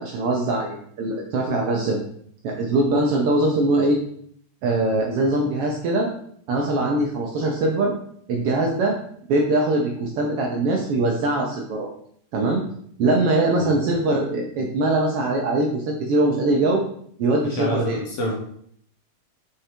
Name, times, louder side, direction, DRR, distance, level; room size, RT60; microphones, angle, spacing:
voice 1, 0.0-2.0 2.4-4.0 4.6-6.1 6.5-7.9 8.3-9.0 9.3-11.9 12.3-12.6 13.0-16.8 17.2-18.0, right 2 dB, 70° right, 0 dB, 1.5 m, -22 dB
voice 2, 17.4-18.3, equal, 60° left, -1 dB, 1.8 m, -27 dB
5.0 x 4.5 x 4.4 m, 0.63 s
omnidirectional pair, 3.3 m